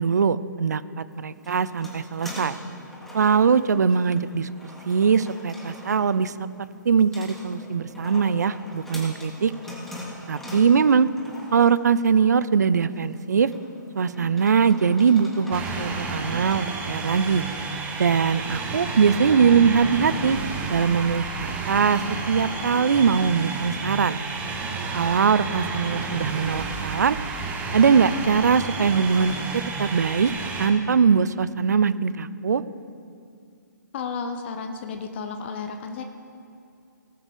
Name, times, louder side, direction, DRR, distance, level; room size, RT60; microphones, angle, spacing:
voice 1, 0.0-2.5 3.1-4.5 4.9-6.3 6.8-9.5 10.3-11.1 11.5-13.5 13.9-17.4 18.0-20.4 20.7-24.2 24.9-27.2 27.7-30.3 30.6-32.6, right 6 dB, 60° right, 16 dB, 0.5 m, -21 dB
sound 1, 1.1-16.9, left 1 dB, 5° left, 2.1 m, -42 dB
sound 2, 15.5-30.7, right 4 dB, 15° right, 1.2 m, -31 dB
voice 2, 33.9-36.0, left 5 dB, 35° left, 6 dB, 0.8 m, -32 dB
18.5 x 7.3 x 5.0 m, 2.3 s
figure-of-eight pair, 135°, 11 cm